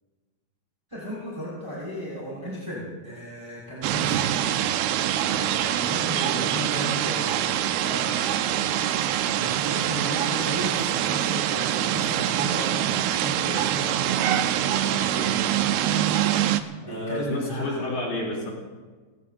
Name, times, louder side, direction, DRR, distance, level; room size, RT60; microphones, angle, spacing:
voice 1, 0.9-4.3 5.3-8.7 9.0-15.7 16.8-17.8, equal, 5° right, -9 dB, 5.3 m, -35 dB
sound 1, 3.8-16.6, right 11 dB, 90° right, 2.2 m, -24 dB
voice 2, 16.8-18.5, left 2 dB, 60° left, -4 dB, 5.2 m, -30 dB
30.0 x 17.0 x 2.8 m, 1.4 s
omnidirectional pair, 5.3 m